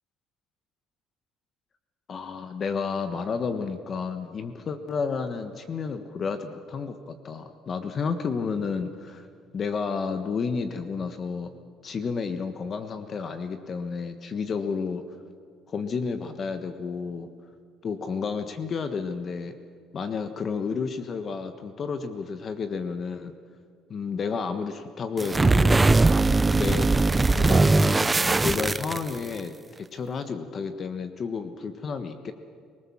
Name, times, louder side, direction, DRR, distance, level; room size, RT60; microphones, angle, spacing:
voice 1, 2.1-9.3 9.5-11.5 11.8-15.0 15.7-17.3 17.8-19.5 19.9-23.3 23.9-25.8 26.5-26.9 27.3-29.5 29.8-32.3, left 5 dB, 40° left, 8 dB, 1.3 m, -31 dB
sound 1, 25.2-29.4, right 3 dB, 15° right, 0.5 m, -20 dB
25.0 x 19.0 x 7.3 m, 2.1 s
cardioid pair, 105°, 0 cm